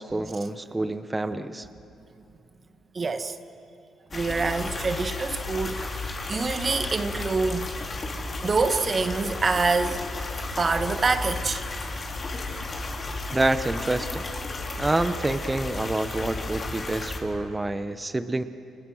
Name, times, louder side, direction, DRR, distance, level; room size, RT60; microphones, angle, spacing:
voice 1, 0.0-1.7 13.3-14.2 14.8-18.4, right 2 dB, 15° right, 10 dB, 0.9 m, -27 dB
voice 2, 2.9-3.4 4.1-7.7 8.4-10.0 10.6-11.6, right 4 dB, 35° right, 9 dB, 1.4 m, -26 dB
sound 1, 4.1-17.2, left 3 dB, 35° left, 4.2 m, -33 dB
30.0 x 27.5 x 6.3 m, 2.6 s
cardioid pair, 90°, 0 cm